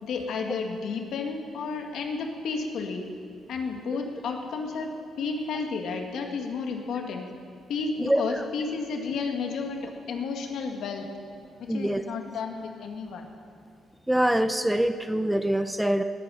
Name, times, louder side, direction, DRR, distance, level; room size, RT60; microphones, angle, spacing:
voice 1, 0.0-3.0 3.5-7.3 7.7-11.1 11.6-13.2, left 4 dB, 75° left, 3 dB, 1.9 m, -32 dB
voice 2, 11.7-12.0 14.1-16.0, right 1 dB, 5° right, 9 dB, 0.6 m, -24 dB
19.5 x 9.2 x 6.5 m, 2.3 s
cardioid pair, 115°, 0 cm